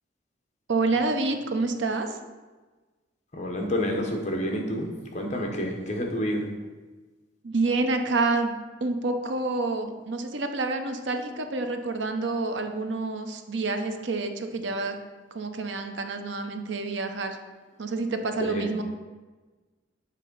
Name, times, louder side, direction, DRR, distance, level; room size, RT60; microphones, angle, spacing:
voice 1, 0.7-2.2 7.4-8.5 8.8-15.0 15.3-17.4 17.8-18.8, right 3 dB, 70° right, 6 dB, 0.7 m, -28 dB
voice 2, 3.3-6.5 18.4-18.7, equal, 40° left, 1 dB, 1.0 m, -29 dB
7.5 x 3.7 x 5.3 m, 1.3 s
head